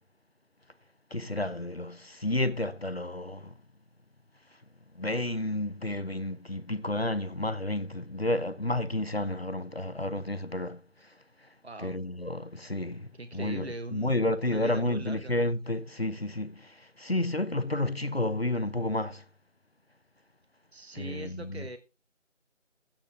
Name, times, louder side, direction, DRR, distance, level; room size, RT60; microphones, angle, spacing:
voice 1, 1.1-3.5 5.0-10.8 11.8-19.2 20.9-21.7, left 1 dB, 55° left, 1.1 m, -31 dB
voice 2, 11.6-12.0 13.1-15.4 20.7-21.8, right 2 dB, 55° right, 1.1 m, -41 dB
16.0 x 8.1 x 3.6 m
figure-of-eight pair, 180°, 37 cm